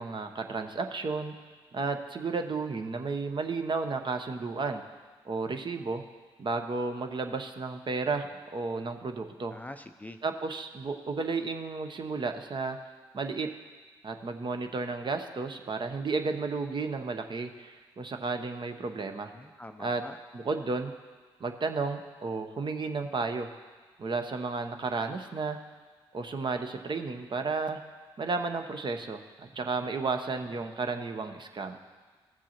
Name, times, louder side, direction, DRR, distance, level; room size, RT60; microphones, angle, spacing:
voice 1, 0.0-1.3 1.7-4.8 5.2-6.0 6.4-9.5 10.2-12.8 13.1-13.5 14.0-19.3 19.8-20.0 20.3-20.9 21.4-23.5 24.0-25.6 26.1-27.8 28.2-31.8, right 4 dB, 45° right, 6 dB, 0.8 m, -33 dB
voice 2, 9.5-10.2 19.4-20.2, left 1 dB, 15° left, 8 dB, 0.5 m, -44 dB
15.0 x 7.2 x 2.9 m, 1.4 s
hypercardioid pair, 40°, 12 cm